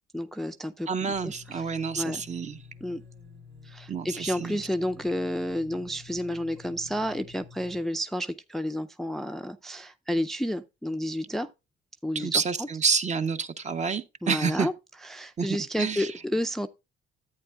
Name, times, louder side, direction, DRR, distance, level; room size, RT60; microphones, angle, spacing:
voice 1, 0.1-1.7 2.0-2.2 2.8-3.0 3.6-11.5 12.0-12.7 14.2-14.7 15.0-16.7, equal, ahead, 0.4 m, -31 dB
voice 2, 0.9-2.6 3.9-4.6 12.1-14.7 15.4-15.5 15.8-16.1, right 5 dB, 35° right, 0.8 m, -28 dB
sound 1, 1.0-7.8, left 4 dB, 70° right, 2.7 m, -49 dB
10.5 x 8.6 x 2.3 m
cardioid pair, 90°, 20 cm